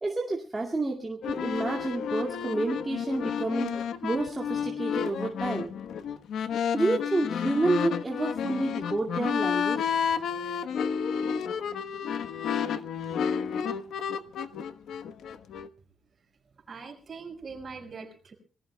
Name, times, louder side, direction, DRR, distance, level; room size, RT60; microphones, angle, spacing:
voice 1, 0.0-5.7 6.7-9.9, right 2 dB, 15° right, -1 dB, 2.1 m, -29 dB
sound 1, 1.2-15.7, left 7 dB, 75° left, 1.1 m, -31 dB
voice 2, 16.7-18.3, right 4 dB, 35° right, 4 dB, 5.2 m, -42 dB
27.0 x 19.5 x 2.3 m, 0.37 s
cardioid pair, 150°, 0 cm